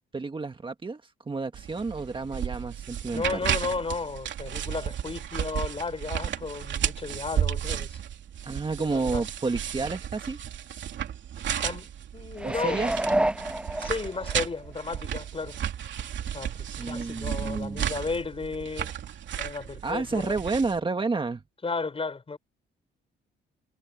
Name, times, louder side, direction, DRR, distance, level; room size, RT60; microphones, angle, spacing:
voice 1, 0.1-3.4 8.4-10.4 12.4-12.9 16.8-17.9 19.8-21.4, right 3 dB, 25° right, 1.7 m, -30 dB
sound 1, 1.5-20.8, right 9 dB, 65° right, 3.0 m, -33 dB
voice 2, 3.1-8.0 8.8-9.2 11.6-11.9 12.1-13.0 13.4-13.5 13.8-15.6 16.3-18.9 19.4-20.3 21.6-22.4, left 4 dB, 30° left, 4.9 m, -33 dB
sound 2, 12.4-14.4 14.9-15.0, right 1 dB, 5° right, 0.4 m, -28 dB
cardioid pair, 90°, 20 cm